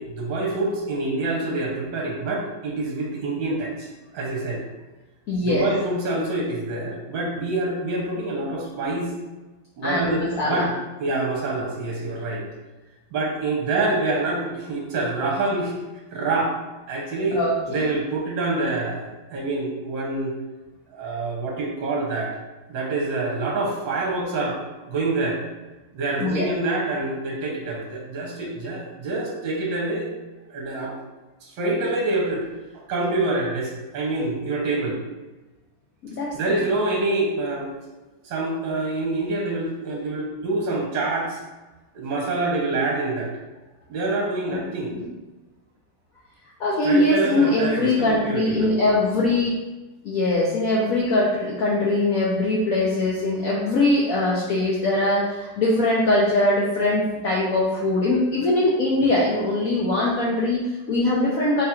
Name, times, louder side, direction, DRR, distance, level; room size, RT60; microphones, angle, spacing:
voice 1, 0.0-3.9 4.1-4.6 5.4-9.1 9.8-12.4 13.1-15.7 16.1-16.5 16.9-17.4 17.7-20.3 20.9-22.3 22.7-25.4 25.9-30.1 30.5-30.9 31.4-32.4 32.9-35.0 36.3-37.7 38.2-41.4 41.9-43.3 43.9-44.9 46.8-48.7, right 2 dB, 70° right, -2 dB, 1.4 m, -26 dB
voice 2, 5.3-5.7 9.8-10.7 17.3-17.8 26.2-26.5 36.0-36.3 44.5-44.6 44.9-45.0 46.6-49.6 50.0-61.6, left 2 dB, 85° left, -4 dB, 0.7 m, -22 dB
3.8 x 2.4 x 4.3 m, 1.2 s
omnidirectional pair, 2.2 m